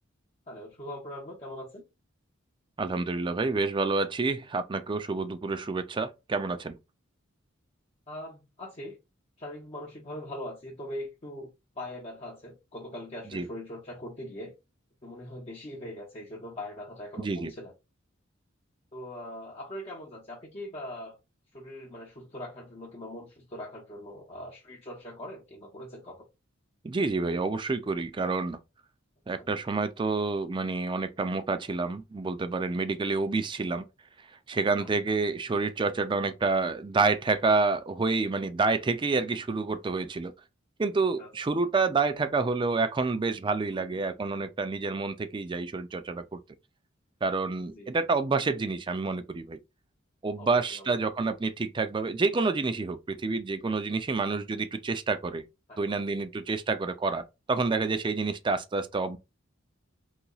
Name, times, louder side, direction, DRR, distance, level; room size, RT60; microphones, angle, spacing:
voice 1, 0.5-1.8 8.1-9.0 9.4-11.5 11.8-14.5 15.0-17.7 18.9-21.2 21.5-26.3 29.4-29.5 34.8-34.9 41.2-41.3 43.7-44.0 47.7-48.0 50.4-50.9 55.7-56.0, left 1 dB, 30° left, 0.7 m, -41 dB
voice 2, 2.8-6.8 13.3-13.5 17.2-17.5 26.8-28.6 29.3-33.8 34.5-40.3 40.8-46.4 47.2-49.6 50.2-55.5 55.8-59.2, right 3 dB, 25° right, 0.4 m, -28 dB
4.0 x 2.9 x 2.3 m
head